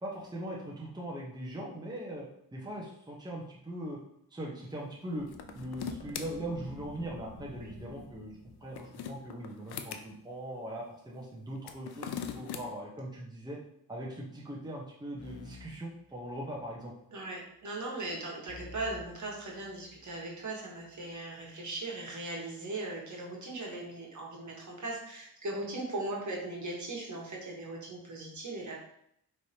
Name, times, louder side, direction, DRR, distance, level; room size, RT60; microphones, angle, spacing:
voice 1, 0.0-2.2 2.5-4.0 4.3-5.3 5.5-8.3 8.6-13.6 13.9-16.9, right 1 dB, 10° right, -4 dB, 1.1 m, -40 dB
sound 1, 5.2-10.5, equal, 35° right, 1.2 m, -51 dB
sound 2, 5.3-6.3 8.5-10.0 11.6-12.6, left 8 dB, 85° left, 0.5 m, -40 dB
sound 3, 15.2-16.8 18.5-20.2, left 3 dB, 40° left, 0.6 m, -51 dB
voice 2, 17.1-28.8, right 2 dB, 50° right, -2 dB, 1.6 m, -39 dB
4.9 x 3.3 x 2.9 m, 0.72 s
cardioid pair, 65°, 38 cm